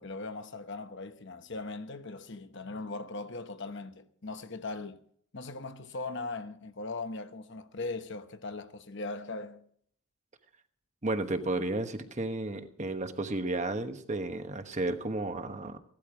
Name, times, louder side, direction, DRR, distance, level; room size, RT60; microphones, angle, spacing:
voice 1, 0.0-5.0 5.3-9.6, left 3 dB, 55° left, 1.0 m, -39 dB
voice 2, 11.0-15.8, right 2 dB, 30° right, 1.1 m, -33 dB
17.0 x 12.5 x 4.9 m
head